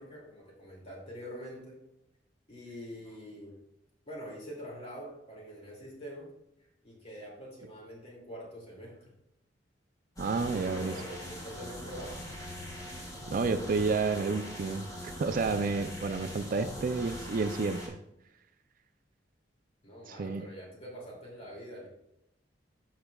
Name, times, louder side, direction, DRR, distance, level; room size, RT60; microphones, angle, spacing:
voice 1, 0.0-1.8 2.5-3.6 4.0-6.3 6.6-9.2 10.2-12.2 16.5-16.7 19.8-21.9, equal, 35° left, -2 dB, 2.4 m, -45 dB
sound 1, 10.2-17.9, left 1 dB, 20° left, 1.9 m, -42 dB
voice 2, 10.2-10.9 13.3-18.0 20.1-20.5, right 4 dB, 50° right, 10 dB, 0.4 m, -30 dB
11.5 x 6.0 x 2.3 m, 0.84 s
head